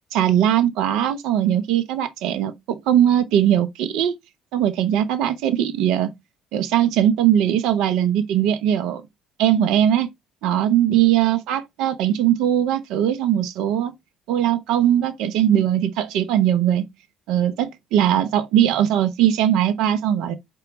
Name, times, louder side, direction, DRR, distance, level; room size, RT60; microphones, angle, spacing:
voice 1, 0.1-4.1 4.5-6.1 6.5-9.0 9.4-10.1 10.4-13.9 14.3-16.8 17.3-20.4, right 10 dB, 70° right, 0.7 m, -20 dB
4.4 x 3.8 x 3.0 m
hypercardioid pair, 55°, 0 cm